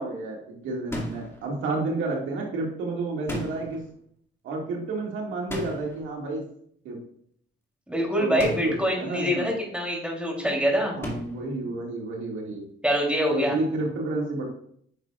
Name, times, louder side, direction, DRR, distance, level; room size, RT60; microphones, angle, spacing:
voice 1, 0.0-3.8 4.4-6.4 6.8-7.0 8.2-9.5 10.9-12.6 13.3-14.4, right 2 dB, 75° right, -1 dB, 2.1 m, -30 dB
sound 1, 0.9-1.4 3.3-3.9 5.5-6.1 8.4-8.9 11.0-11.5, left 1 dB, 10° left, 2.2 m, -34 dB
voice 2, 7.9-11.0 12.8-13.5, equal, 5° right, -2 dB, 3.2 m, -25 dB
9.6 x 6.0 x 2.5 m, 0.65 s
cardioid pair, 90°, 20 cm